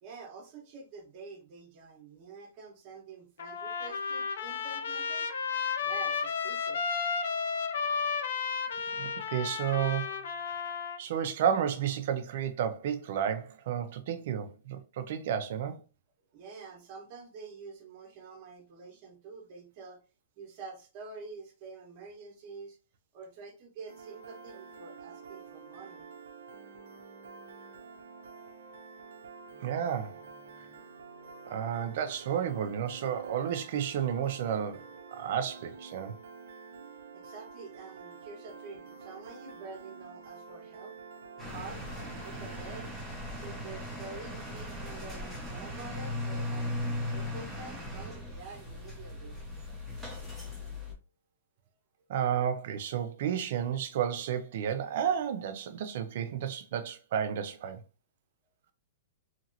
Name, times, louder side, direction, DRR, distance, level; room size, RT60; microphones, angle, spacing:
voice 1, 0.0-5.3 5.8-6.9 16.3-20.0 20.4-22.8 23.1-26.1 37.1-40.9 41.5-41.9 42.2-42.9 43.3-46.8 47.1-49.3, right 4 dB, 30° right, 1.0 m, -47 dB
Trumpet, 3.4-11.0, left 6 dB, 70° left, 0.5 m, -33 dB
voice 2, 9.0-10.1 11.0-15.8 29.6-30.1 31.4-34.8 35.1-36.2 52.1-57.8, right 8 dB, 50° right, 0.5 m, -31 dB
Piano, 23.9-42.9, right 5 dB, 90° right, 0.6 m, -49 dB
sound 1, 41.4-50.9, left 1 dB, ahead, 0.9 m, -38 dB
2.9 x 2.8 x 2.6 m
hypercardioid pair, 165°, 0 cm